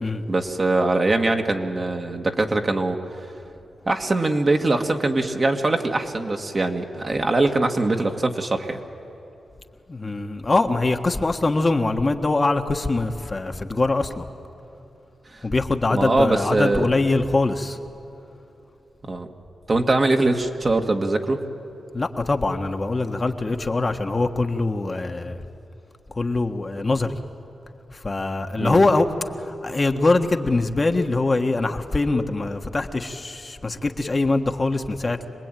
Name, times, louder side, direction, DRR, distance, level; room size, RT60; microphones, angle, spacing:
voice 1, 0.3-3.0 3.9-8.8 15.3-15.4 15.9-16.9 19.0-19.3 19.7-21.4 28.6-28.8, right 2 dB, 40° right, 3 dB, 2.0 m, -22 dB
voice 2, 9.9-14.2 15.4-17.8 21.9-25.4 26.1-27.1 27.9-29.1 29.4-35.2, left 2 dB, 35° left, 5 dB, 1.4 m, -23 dB
26.0 x 19.5 x 9.2 m, 3.0 s
cardioid pair, 55°, 0 cm